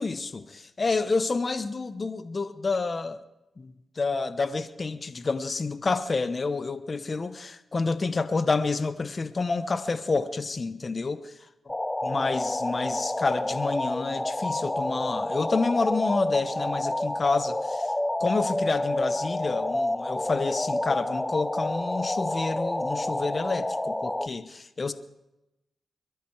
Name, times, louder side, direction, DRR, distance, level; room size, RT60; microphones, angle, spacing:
voice 1, 0.0-3.2 3.6-11.3 11.7-11.8 12.0-17.9 18.2-24.9, left 4 dB, 45° left, 12 dB, 0.9 m, -29 dB
sound 1, 11.7-24.3, left 1 dB, 15° left, 0.8 m, -29 dB
22.5 x 13.0 x 4.8 m, 0.91 s
supercardioid pair, 50°, 0 cm